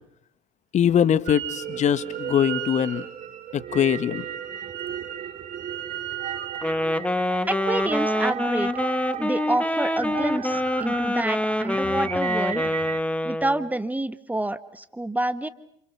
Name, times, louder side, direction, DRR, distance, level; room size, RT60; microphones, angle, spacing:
voice 1, 0.7-3.0 3.5-4.2, left 9 dB, 45° left, 15 dB, 1.7 m, -22 dB
Wind instrument woodwind instrument, 1.3-1.7 1.9-6.7, right 12 dB, 75° right, 4.9 m, -37 dB
sound 1, 1.5-13.0, right 10 dB, 40° right, 1.4 m, -35 dB
Wind instrument woodwind instrument 2, 6.6-13.7, left 1 dB, 5° left, 1.7 m, -26 dB
voice 2, 7.5-8.9 9.2-12.6 13.2-15.5, right 1 dB, 10° right, 15 dB, 1.5 m, -28 dB
29.5 x 28.5 x 6.1 m, 0.69 s
hypercardioid pair, 75°, 17 cm